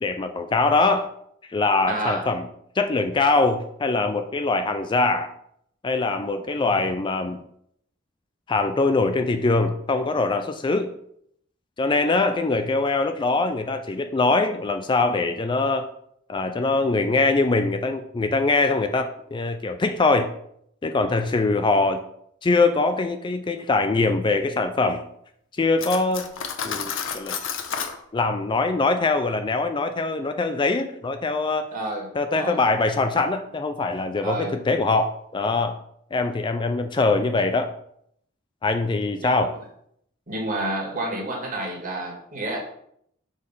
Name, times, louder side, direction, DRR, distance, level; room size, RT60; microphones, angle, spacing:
voice 1, 0.0-1.1 1.5-2.4 2.8-5.3 5.8-7.4 8.5-10.9 11.8-15.9 16.3-20.3 20.8-22.0 22.4-25.0 25.6-26.3 26.6-27.4 28.1-31.7 32.2-35.8 36.1-37.7 38.6-39.6, left 3 dB, 25° left, 8 dB, 0.4 m, -23 dB
voice 2, 1.9-2.2 31.7-32.1 32.3-32.6 34.2-34.5 39.2-39.5 40.3-42.6, right 2 dB, 45° right, -1 dB, 1.8 m, -29 dB
Cutlery silverware, 25.8-28.0, left 7 dB, 65° left, 0.7 m, -30 dB
6.4 x 3.3 x 5.5 m, 0.70 s
head